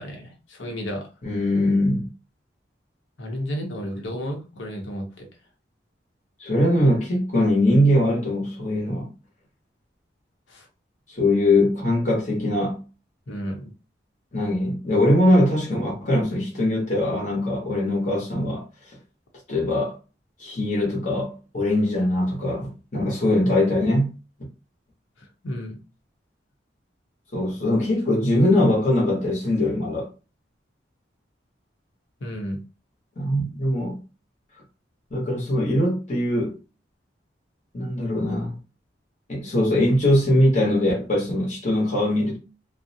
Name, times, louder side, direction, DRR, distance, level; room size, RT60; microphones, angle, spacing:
voice 1, 0.0-1.1 3.2-5.2 10.5-10.7 13.3-13.7 25.4-25.8 32.2-32.6, equal, 85° left, 0.8 m, -32 dB
voice 2, 1.2-2.1 6.4-9.1 11.1-12.8 14.3-18.7 19.5-20.0 20.4-24.2 27.3-30.1 33.2-34.0 35.1-36.5 37.7-38.6 39.3-42.4, left 1 dB, 40° left, 0.8 m, -21 dB
2.4 x 2.0 x 2.6 m
head